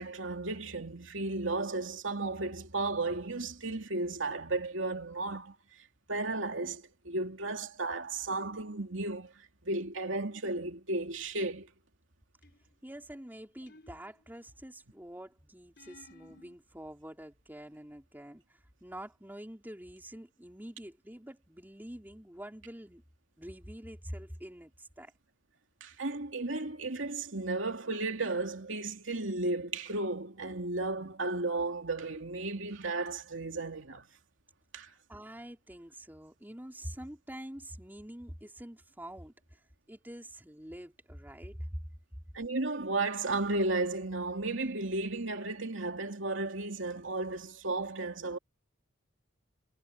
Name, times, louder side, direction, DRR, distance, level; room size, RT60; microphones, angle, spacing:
voice 1, 0.0-5.5 6.1-11.7 25.8-34.1 34.7-34.9 42.3-48.4, right 2 dB, 75° right, 2.8 m, -34 dB
sound 1, 12.4-12.9 13.7-14.5 15.8-16.6, left 2 dB, 55° left, 5.1 m, -57 dB
voice 2, 12.8-23.0 23.4-25.1 35.1-39.6 39.9-41.8, equal, 10° right, 3.7 m, -46 dB
head